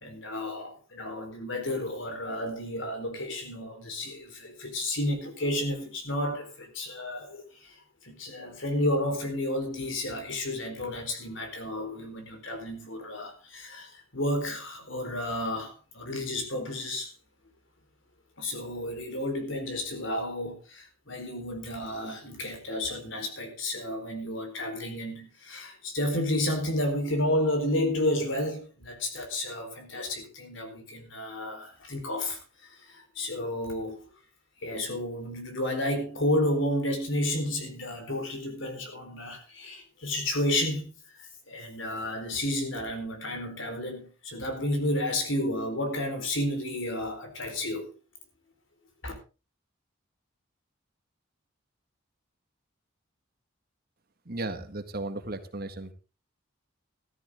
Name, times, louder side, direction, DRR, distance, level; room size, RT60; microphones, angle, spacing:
voice 1, 0.0-7.7 8.0-17.1 18.4-34.0 34.6-40.9 41.2-48.0 49.0-49.1, left 1 dB, 65° left, 4.3 m, -31 dB
voice 2, 54.3-55.9, right 2 dB, 45° right, 1.8 m, -35 dB
14.5 x 13.5 x 3.7 m
head